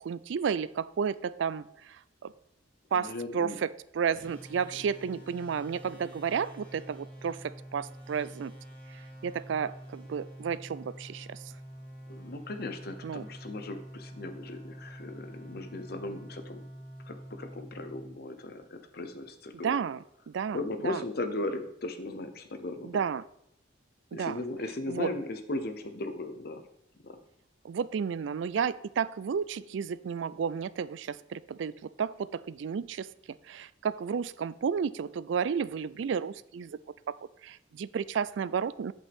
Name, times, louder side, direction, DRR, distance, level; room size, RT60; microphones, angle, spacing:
voice 1, 0.0-2.3 2.9-8.5 8.9-11.5 13.0-13.2 19.6-20.0 20.3-20.6 20.8-21.0 22.8-23.2 24.1-24.4 24.9-25.1 27.6-31.7 32.0-36.8 37.1-37.2 37.4-38.9, right 6 dB, 75° right, 18 dB, 0.3 m, -32 dB
voice 2, 2.9-3.6 5.1-5.2 12.1-16.7 17.0-19.7 20.5-23.0 24.1-26.6 27.0-27.2, left 2 dB, 55° left, 8 dB, 0.9 m, -37 dB
sound 1, 4.1-18.7, right 1 dB, 10° left, 3.4 m, -47 dB
8.4 x 8.0 x 3.6 m, 0.78 s
head